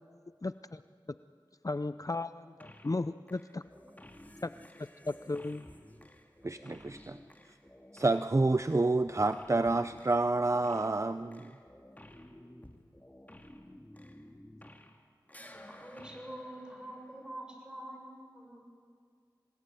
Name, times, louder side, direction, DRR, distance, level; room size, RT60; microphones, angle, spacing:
voice 1, 0.4-0.8 1.6-3.6 4.4-4.5 4.8-5.6, left 2 dB, 45° left, 12 dB, 0.6 m, -35 dB
sound 1, 2.6-3.0 3.3-15.0 15.3-17.5, left 1 dB, 20° left, 2.4 m, -54 dB
voice 2, 6.4-7.2 7.9-11.6, right 2 dB, 40° right, 11 dB, 0.6 m, -28 dB
voice 3, 15.5-18.6, right 1 dB, 10° right, 0 dB, 7.1 m, -46 dB
26.5 x 19.0 x 9.4 m, 2.1 s
wide cardioid pair, 45°, 8 cm